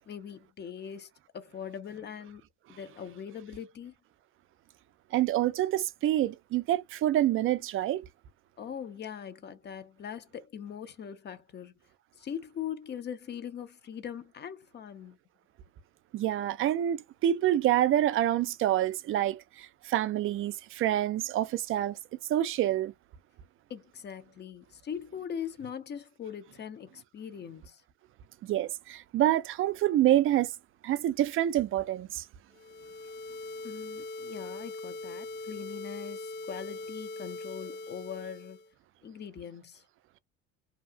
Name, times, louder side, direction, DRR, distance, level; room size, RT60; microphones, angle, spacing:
voice 1, 0.1-1.1 1.3-2.4 2.7-3.9 8.6-11.7 12.2-15.2 23.7-27.8 33.6-38.6 39.0-39.8, left 8 dB, 30° left, 0.5 m, -41 dB
voice 2, 5.1-8.0 16.1-21.9 22.3-22.9 28.4-30.5 30.8-32.2, right 12 dB, 40° right, 0.4 m, -27 dB
sound 1, 32.5-38.7, left 2 dB, 85° left, 0.6 m, -41 dB
2.8 x 2.4 x 2.2 m
supercardioid pair, 90°, 35 cm